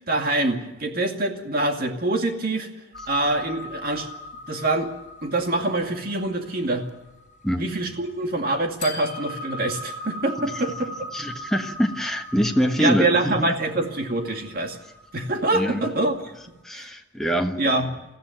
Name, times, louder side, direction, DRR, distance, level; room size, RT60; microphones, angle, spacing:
voice 1, 0.1-2.7 3.1-4.1 4.5-4.9 5.2-6.9 7.6-11.1 12.8-14.8 15.1-16.1 16.7-16.9 17.6-17.9, right 2 dB, 50° right, 4 dB, 2.3 m, -25 dB
sound 1, 2.9-8.1 8.8-16.3, left 1 dB, 40° left, 4.1 m, -40 dB
voice 2, 11.1-13.5 15.5-15.8 16.6-17.6, equal, ahead, 2 dB, 1.3 m, -24 dB
20.5 x 14.5 x 9.2 m, 0.99 s
head